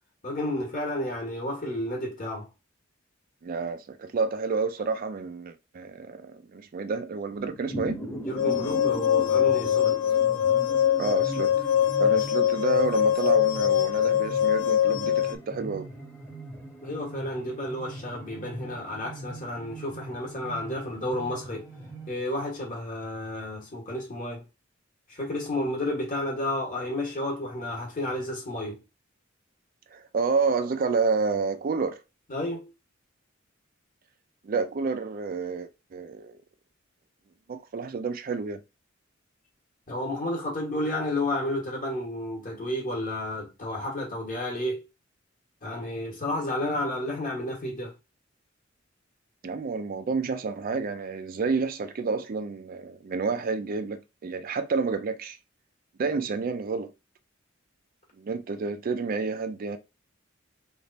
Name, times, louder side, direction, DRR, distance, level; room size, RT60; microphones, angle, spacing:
voice 1, 0.2-2.5 8.2-10.0 16.8-21.7 22.1-24.4 25.1-28.8 32.3-32.7 39.9-44.8 45.6-47.9, left 1 dB, 40° left, 1.5 m, -31 dB
voice 2, 3.4-8.0 11.0-11.7 12.0-15.9 29.9-32.0 34.4-36.4 37.5-38.6 49.4-55.4 56.0-56.9 58.2-59.8, right 4 dB, 45° right, 0.4 m, -29 dB
sound 1, 7.3-22.1, right 1 dB, 15° left, 1.0 m, -40 dB
sound 2, 8.4-15.4, left 10 dB, 85° left, 0.5 m, -23 dB
3.3 x 2.5 x 3.9 m
head